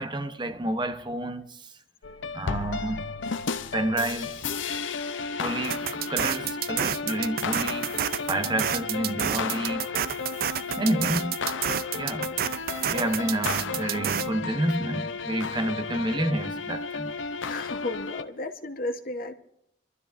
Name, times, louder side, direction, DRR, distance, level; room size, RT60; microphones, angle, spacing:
voice 1, 0.0-1.7 2.3-3.1 3.7-4.4 5.4-8.0 8.3-9.9 10.8-11.4 11.9-12.4 12.9-17.1, right 1 dB, 25° right, 0.9 m, -29 dB
sound 1, 2.0-18.2, left 4 dB, 80° left, 0.7 m, -33 dB
sound 2, 5.6-14.3, right 10 dB, 55° right, 0.4 m, -29 dB
voice 2, 17.5-19.3, left 2 dB, 50° left, 1.1 m, -33 dB
26.5 x 12.5 x 2.6 m
head